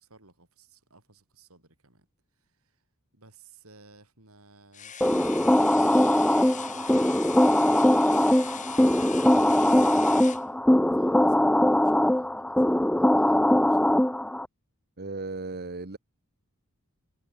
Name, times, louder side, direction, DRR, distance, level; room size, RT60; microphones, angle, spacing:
voice 1, 0.0-2.1 2.3-2.9 3.1-6.2 6.5-10.3 10.9-12.6 13.0-14.0, right 3 dB, 75° right, 7.1 m, -57 dB
sound 1, 4.7-10.4, left 8 dB, 35° left, 2.4 m, -41 dB
sound 2, 5.0-14.5, left 1 dB, 5° left, 0.4 m, -21 dB
voice 2, 15.0-16.0, right 3 dB, 50° right, 1.5 m, -35 dB
head